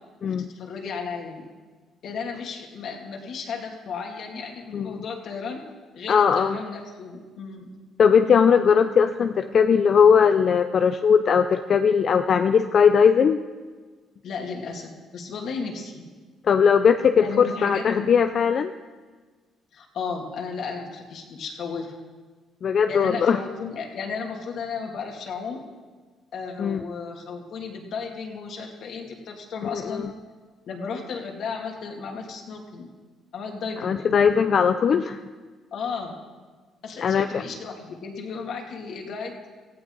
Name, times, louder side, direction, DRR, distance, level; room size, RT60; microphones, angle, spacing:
voice 1, 0.2-1.5 2.0-5.6 5.9-7.7 14.2-16.1 17.2-18.1 19.7-21.9 22.9-25.6 26.3-30.1 30.7-32.9 33.3-34.0 35.7-36.1 36.8-39.4, left 5 dB, 60° left, 1 dB, 2.5 m, -34 dB
voice 2, 4.7-5.0 6.1-6.6 8.0-13.4 16.4-18.7 22.6-23.4 26.6-26.8 29.7-30.1 33.8-35.2 37.0-37.4, left 6 dB, 45° left, 8 dB, 0.5 m, -19 dB
17.5 x 15.0 x 4.0 m, 1.4 s
cardioid pair, 130°, 0 cm